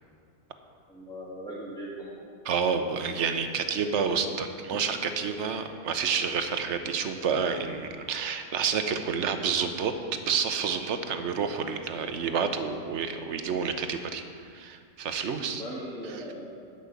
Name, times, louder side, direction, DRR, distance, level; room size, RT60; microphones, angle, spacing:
voice 1, 0.9-2.2 15.6-16.5, equal, 5° left, -9 dB, 1.8 m, -39 dB
voice 2, 2.4-9.9 10.2-14.2 14.5-15.6 16.1-16.2, right 6 dB, 70° right, 7 dB, 1.1 m, -29 dB
Wind instrument woodwind instrument, 3.2-8.8, equal, 90° left, 3.1 m, -52 dB
10.0 x 5.5 x 8.2 m, 2.2 s
omnidirectional pair, 1.2 m